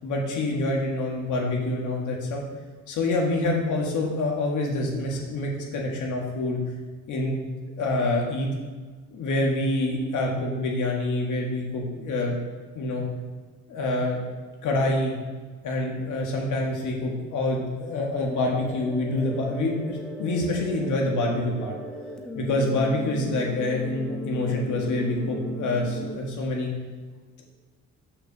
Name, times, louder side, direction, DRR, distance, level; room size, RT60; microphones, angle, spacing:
voice 1, 0.0-2.4 2.9-6.6 7.1-8.5 9.1-12.4 12.7-13.1 13.7-14.2 14.6-15.1 15.6-21.7 22.4-26.7, left 2 dB, 85° left, -1 dB, 1.8 m, -26 dB
sound 1, 18.2-26.2, equal, 5° left, 1.0 m, -37 dB
6.5 x 4.9 x 6.6 m, 1.4 s
cardioid pair, 90°, 30 cm